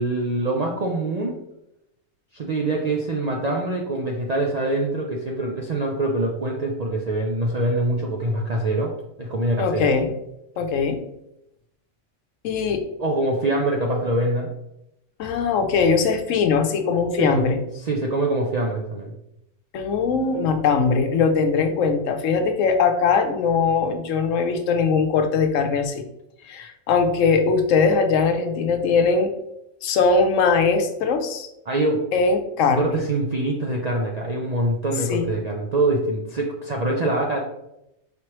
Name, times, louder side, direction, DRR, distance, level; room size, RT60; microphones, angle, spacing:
voice 1, 0.0-1.3 2.3-8.9 9.2-9.9 13.0-14.5 17.2-17.4 17.8-19.1 31.7-32.0 32.7-37.4, right 2 dB, 60° right, 0 dB, 0.4 m, -24 dB
voice 2, 9.6-10.1 10.6-11.0 12.4-12.8 15.2-17.6 19.7-25.9 26.5-29.3 29.8-31.5 32.1-33.0 35.1-35.3, left 5 dB, 80° left, 7 dB, 1.0 m, -21 dB
5.1 x 3.1 x 2.9 m, 0.85 s
omnidirectional pair, 1.3 m